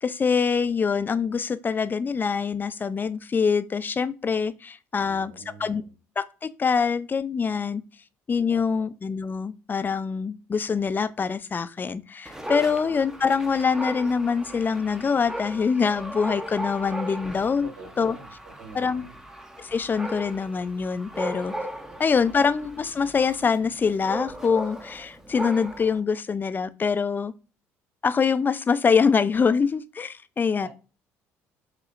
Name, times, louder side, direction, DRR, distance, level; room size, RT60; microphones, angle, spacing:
voice 1, 0.0-5.8 6.2-7.8 8.3-17.7 18.0-18.2 18.7-19.0 19.6-21.5 22.0-27.3 28.0-30.7, left 5 dB, 30° left, 0.4 m, -24 dB
voice 2, 5.0-5.9 8.5-8.9 12.6-13.0 17.6-19.2 21.9-22.3 30.6-30.7, right 3 dB, 80° right, 2.1 m, -46 dB
Dog, 12.3-26.0, equal, 5° right, 0.7 m, -37 dB
4.9 x 2.9 x 2.4 m
hypercardioid pair, 65°, 7 cm